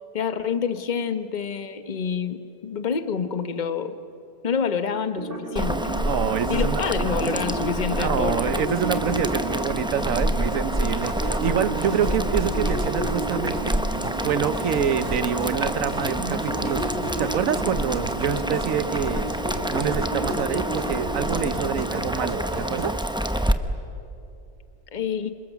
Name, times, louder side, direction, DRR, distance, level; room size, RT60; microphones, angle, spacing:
voice 1, 0.1-4.0 4.4-5.9 6.5-8.4 24.9-25.3, left 6 dB, 35° left, 10 dB, 1.1 m, -27 dB
sound 1, 5.2-23.0, right 2 dB, 35° right, 2.3 m, -32 dB
Boiling, 5.6-23.5, equal, 5° right, 0.7 m, -27 dB
voice 2, 6.1-7.4 8.0-13.8 14.2-16.8 17.2-19.3 19.7-22.9, right 8 dB, 65° right, 14 dB, 1.2 m, -27 dB
29.0 x 27.0 x 7.2 m, 2.7 s
omnidirectional pair, 1.6 m